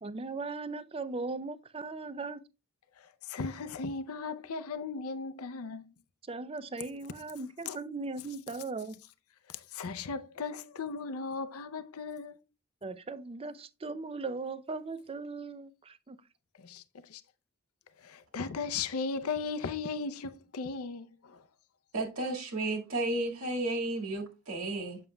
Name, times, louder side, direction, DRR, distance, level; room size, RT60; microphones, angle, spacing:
voice 1, 0.0-2.4 6.3-8.9 12.8-16.2, right 3 dB, 25° right, 0.4 m, -38 dB
voice 2, 3.0-5.8 7.7-7.8 9.5-12.4 16.6-17.2 18.0-21.4, left 4 dB, 85° left, 0.6 m, -37 dB
voice 3, 21.9-25.0, right 2 dB, 80° right, 1.9 m, -33 dB
7.6 x 7.2 x 2.2 m
head